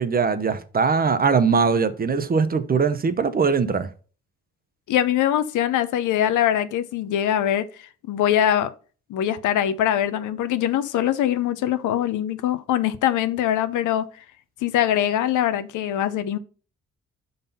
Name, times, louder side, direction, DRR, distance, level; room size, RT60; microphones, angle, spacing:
voice 1, 0.0-3.9, right 5 dB, 30° right, 0.7 m, -21 dB
voice 2, 4.9-8.7 9.1-14.1 14.6-16.4, left 11 dB, 80° left, 0.7 m, -23 dB
5.5 x 4.0 x 5.3 m
cardioid pair, 90°, 30 cm